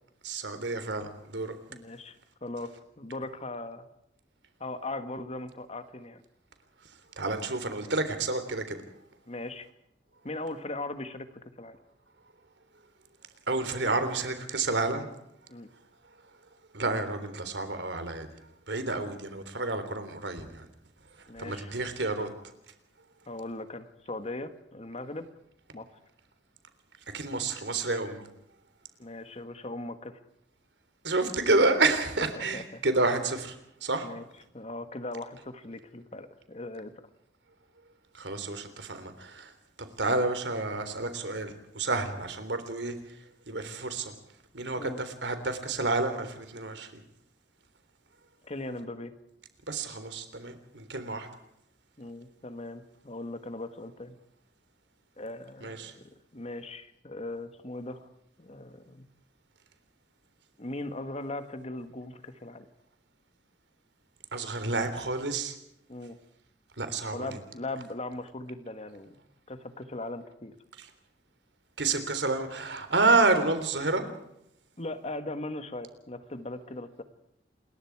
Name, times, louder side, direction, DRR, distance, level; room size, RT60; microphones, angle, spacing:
voice 1, 0.2-1.5 7.2-8.8 13.5-15.1 16.7-18.4 18.7-20.7 21.4-22.3 27.1-28.3 31.0-34.1 38.1-39.5 40.0-43.0 43.5-44.2 44.5-47.0 49.7-51.3 55.6-55.9 64.3-65.5 66.8-67.3 70.8-70.9 71.8-74.0, right 3 dB, 75° right, 9 dB, 3.6 m, -29 dB
voice 2, 1.7-3.9 4.6-6.2 9.3-9.7 10.2-11.3 11.6-11.8 15.5-15.7 21.3-21.7 23.3-25.3 25.7-25.9 29.0-30.2 32.4-32.8 34.0-34.2 34.5-36.9 44.8-45.0 48.4-49.1 52.0-54.2 55.2-58.1 58.4-59.1 60.6-62.7 65.9-66.2 67.1-70.6 74.8-77.0, left 2 dB, 35° left, 10 dB, 1.7 m, -39 dB
28.0 x 22.0 x 4.8 m, 0.78 s
head